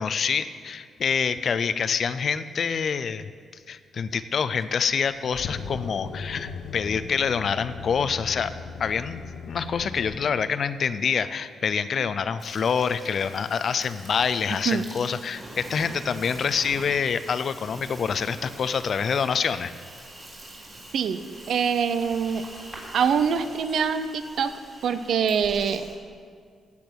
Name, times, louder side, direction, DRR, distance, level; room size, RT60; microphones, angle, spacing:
voice 1, 0.0-8.5 8.8-9.2 9.5-19.7, left 6 dB, 50° left, 13 dB, 0.5 m, -26 dB
sound 1, 4.6-10.2, left 5 dB, 80° left, 1.0 m, -38 dB
Insect, 12.4-26.0, right 1 dB, 25° right, 3.5 m, -44 dB
voice 2, 21.5-22.5 22.9-24.5 24.8-25.9, right 7 dB, 70° right, 11 dB, 0.7 m, -24 dB
15.5 x 8.5 x 6.2 m, 2.1 s
cardioid pair, 115°, 0 cm